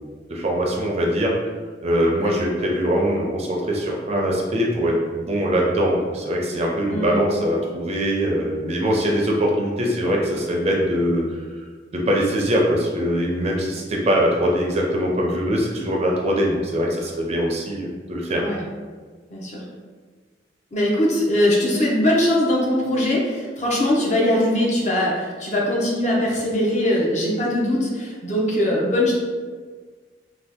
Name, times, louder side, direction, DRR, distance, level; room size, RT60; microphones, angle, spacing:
voice 1, 0.3-1.4 1.8-11.5 11.9-18.4, equal, 35° right, -2 dB, 0.5 m, -22 dB
voice 2, 6.9-7.2 18.4-18.6 19.3-19.6 20.7-29.1, left 1 dB, 40° left, -3 dB, 0.7 m, -21 dB
2.7 x 2.3 x 3.5 m, 1.5 s
head